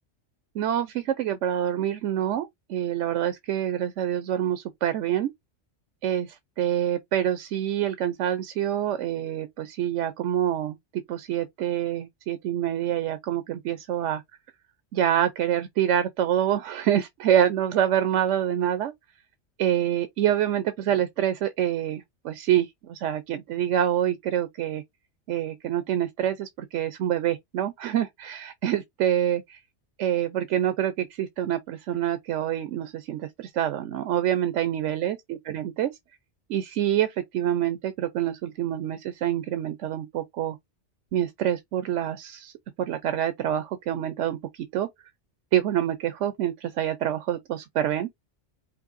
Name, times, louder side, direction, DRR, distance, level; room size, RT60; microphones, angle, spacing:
voice 1, 0.5-5.3 6.0-14.2 14.9-18.9 19.6-24.8 25.3-29.6 30.0-35.9 36.5-40.6 41.1-42.5 42.8-44.9 45.5-48.1, right 11 dB, 90° right, 1.0 m, -26 dB
5.2 x 2.6 x 2.5 m
omnidirectional pair, 1.2 m